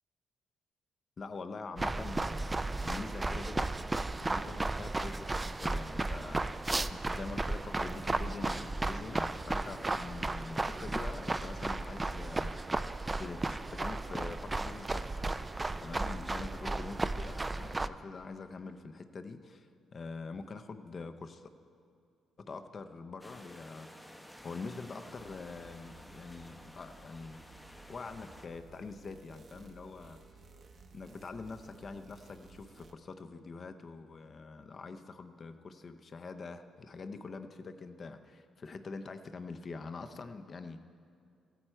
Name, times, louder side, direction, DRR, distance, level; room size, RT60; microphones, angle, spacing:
voice 1, 1.2-6.4 6.9-12.5 13.1-15.5 15.8-21.4 22.4-27.4 27.9-30.2 30.9-40.8, left 4 dB, 40° left, 8 dB, 0.6 m, -45 dB
sound 1, 1.8-17.9, right 2 dB, 20° right, 0.3 m, -34 dB
sound 2, 23.2-28.5, equal, 5° left, 0.7 m, -53 dB
sound 3, 25.2-32.9, right 3 dB, 45° right, 0.9 m, -57 dB
15.0 x 9.2 x 4.4 m, 2.4 s
cardioid pair, 90°, 0 cm